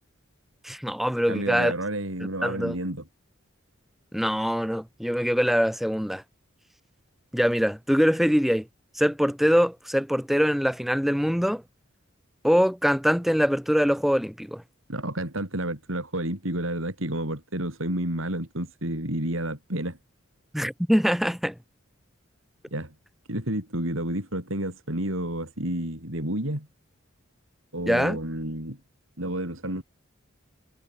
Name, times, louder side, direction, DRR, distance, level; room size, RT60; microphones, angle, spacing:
voice 1, 0.6-1.7 2.4-2.7 4.1-6.2 7.3-8.7 9.0-11.6 12.4-14.6 20.5-21.5 27.9-28.2, equal, ahead, 2.2 m, -23 dB
voice 2, 1.3-3.0 14.9-20.0 22.7-22.9 23.3-26.7 27.7-28.8 29.2-29.8, right 1 dB, 75° right, 6.7 m, -30 dB
head